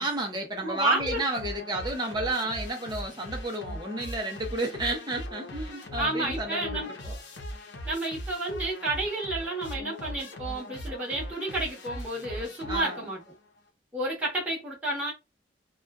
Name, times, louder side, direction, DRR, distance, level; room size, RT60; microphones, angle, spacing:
voice 1, 0.0-7.2 12.7-13.1, right 2 dB, 25° right, 0.7 m, -32 dB
voice 2, 0.6-1.2 6.0-6.9 7.8-13.2 13.9-15.1, right 2 dB, 10° right, 1.0 m, -31 dB
sound 1, 1.0-13.4, equal, 85° left, 0.7 m, -39 dB
2.5 x 2.3 x 2.3 m
head